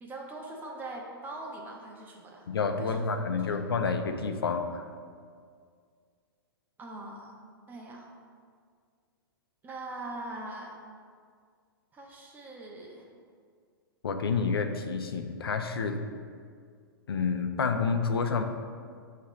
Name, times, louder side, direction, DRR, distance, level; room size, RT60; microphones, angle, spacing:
voice 1, 0.0-2.5 2.8-3.6 6.8-7.3 7.7-8.1 9.6-10.8 11.9-13.1, right 2 dB, 15° right, 0 dB, 0.6 m, -42 dB
voice 2, 2.5-4.8 14.0-16.0 17.1-18.4, left 5 dB, 75° left, 6 dB, 0.4 m, -29 dB
7.1 x 2.4 x 3.0 m, 2.1 s
figure-of-eight pair, 115°, 12 cm